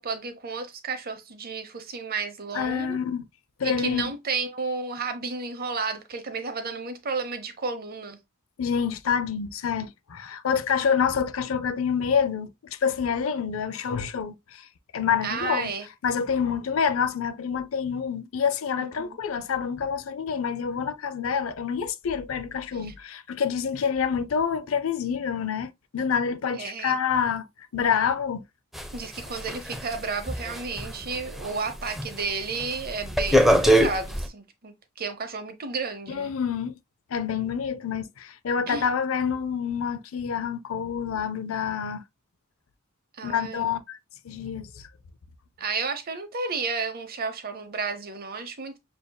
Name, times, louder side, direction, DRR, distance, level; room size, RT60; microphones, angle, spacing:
voice 1, 0.0-3.0 3.6-8.2 15.2-15.9 18.8-19.2 22.7-22.9 26.5-27.0 28.9-36.3 38.7-38.9 43.2-43.7 45.6-48.8, right 4 dB, 45° right, 0.8 m, -32 dB
voice 2, 2.5-3.2 3.6-4.1 8.6-14.6 14.9-15.7 16.0-27.5 27.7-28.4 36.1-36.7 37.1-42.0 43.2-44.0 44.2-44.9, left 7 dB, 75° left, 0.5 m, -27 dB
sound 1, 28.7-31.5 31.9-32.2 32.6-34.3, equal, ahead, 0.5 m, -23 dB
6.7 x 2.8 x 2.2 m
head